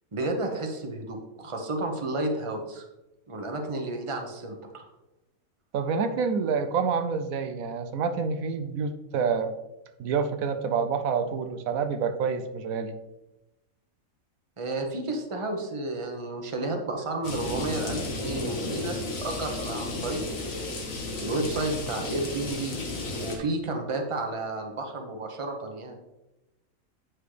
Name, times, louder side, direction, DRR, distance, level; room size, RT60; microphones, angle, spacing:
voice 1, 0.1-2.9 3.3-4.9 14.6-22.8 23.2-26.0, right 2 dB, 25° right, 3 dB, 0.9 m, -32 dB
voice 2, 5.7-9.5 10.0-12.9, right 5 dB, 85° right, 9 dB, 1.1 m, -27 dB
sound 1, 17.2-23.4, left 2 dB, 70° left, 1.6 m, -33 dB
8.4 x 6.0 x 3.3 m, 0.97 s
omnidirectional pair, 1.4 m